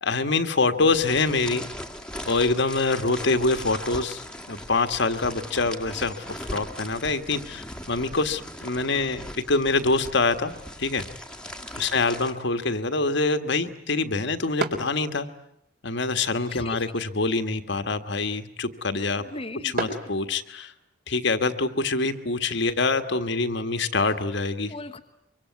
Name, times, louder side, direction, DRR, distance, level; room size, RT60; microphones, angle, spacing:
voice 1, 0.0-1.6 2.2-10.5 10.8-11.0 11.8-15.3 15.8-19.2 19.6-20.7 21.1-24.7, left 3 dB, 60° left, 8 dB, 1.6 m, -25 dB
sound 1, 0.9-12.3, left 1 dB, 5° left, 1.7 m, -39 dB
sound 2, 10.8-20.9, right 2 dB, 50° right, 3.7 m, -40 dB
voice 2, 16.5-17.0 19.1-19.9 24.7-25.0, left 2 dB, 30° left, 3 dB, 1.1 m, -39 dB
24.5 x 24.5 x 9.4 m, 0.77 s
head